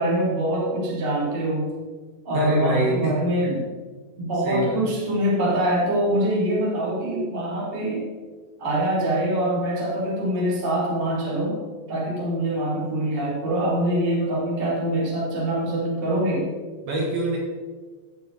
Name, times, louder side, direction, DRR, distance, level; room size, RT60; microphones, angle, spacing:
voice 1, 0.0-1.7 2.2-3.6 4.2-8.1 8.6-11.6 11.9-16.5, right 1 dB, 15° right, -5 dB, 2.3 m, -24 dB
voice 2, 2.3-3.6 4.4-4.8 16.8-17.4, right 1 dB, 60° right, -2 dB, 3.3 m, -25 dB
16.0 x 8.3 x 4.2 m, 1.4 s
omnidirectional pair, 5.7 m